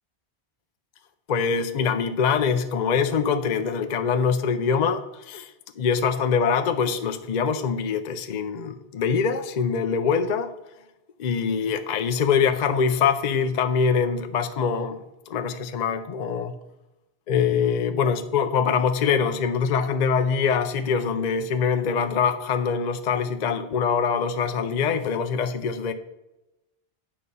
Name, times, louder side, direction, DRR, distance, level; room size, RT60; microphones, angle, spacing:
voice 1, 1.3-10.5 11.2-15.0 15.3-16.5 17.3-25.9, left 6 dB, 50° left, 0.6 m, -24 dB
8.7 x 5.5 x 5.3 m
omnidirectional pair, 1.0 m